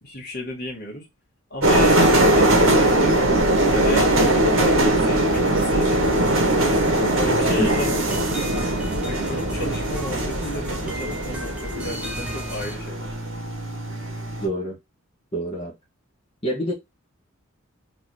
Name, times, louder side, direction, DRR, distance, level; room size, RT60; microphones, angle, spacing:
voice 1, 0.0-1.1 1.5-3.2 3.7-6.6 7.2-8.5 9.1-13.2, left 1 dB, 50° left, 1.9 m, -33 dB
sound 1, 1.6-14.5, right 1 dB, 70° right, 1.4 m, -21 dB
sound 2, 5.3-12.7, equal, 5° right, 0.9 m, -35 dB
voice 2, 7.6-7.9 14.4-14.8 15.3-15.7 16.4-16.7, right 1 dB, 25° left, 1.2 m, -26 dB
4.1 x 3.0 x 3.1 m
head